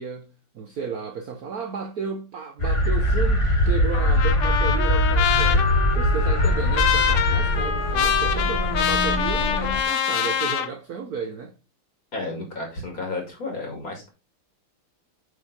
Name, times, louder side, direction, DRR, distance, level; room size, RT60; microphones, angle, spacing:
voice 1, 0.0-11.5, right 6 dB, 60° right, 1.0 m, -33 dB
sound 1, 2.6-9.8, left 1 dB, 20° left, 0.8 m, -22 dB
Trumpet, 3.9-10.7, left 8 dB, 90° left, 1.8 m, -25 dB
voice 2, 12.1-14.1, left 2 dB, 40° left, 2.7 m, -32 dB
8.7 x 4.3 x 3.8 m
omnidirectional pair, 2.4 m